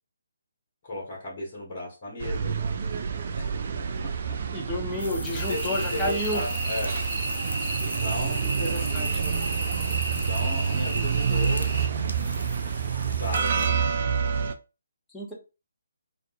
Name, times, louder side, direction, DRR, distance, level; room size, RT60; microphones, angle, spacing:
voice 1, 0.8-2.6 3.4-3.6 5.4-6.9 7.8-8.5 10.2-11.7 13.1-13.8, left 2 dB, 30° left, -3 dB, 1.0 m, -35 dB
sound 1, 2.2-14.5, right 6 dB, 45° right, 0.3 m, -28 dB
voice 2, 4.5-6.4 8.6-9.2 15.1-15.3, left 1 dB, 5° left, -5 dB, 0.8 m, -31 dB
sound 2, 5.0-13.7, left 2 dB, 75° left, 0.3 m, -41 dB
sound 3, 5.4-11.9, right 2 dB, 25° right, 0.9 m, -33 dB
2.4 x 2.3 x 2.4 m, 0.30 s
figure-of-eight pair, 140°, 0 cm